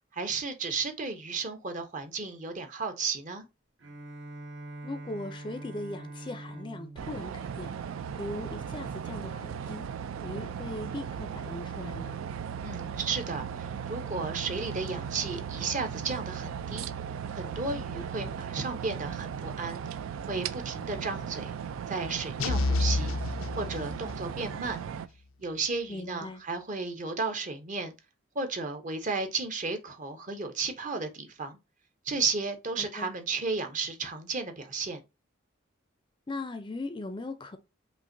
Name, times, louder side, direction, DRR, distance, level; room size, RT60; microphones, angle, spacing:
voice 1, 0.1-3.5 12.6-16.9 17.3-19.8 20.3-21.5 21.9-23.1 23.6-24.8 25.4-27.9 28.3-31.6 32.0-35.0, right 4 dB, 40° right, 0.7 m, -33 dB
Bowed string instrument, 3.8-8.5, right 2 dB, 70° right, 1.1 m, -45 dB
voice 2, 4.8-9.9 10.2-12.1 25.9-26.4 32.8-33.1 36.3-37.6, left 2 dB, 25° left, 0.4 m, -39 dB
sound 1, 7.0-25.1, right 7 dB, 90° right, 0.3 m, -37 dB
sound 2, 22.4-24.3, left 2 dB, 85° left, 0.4 m, -29 dB
5.5 x 2.5 x 2.6 m
head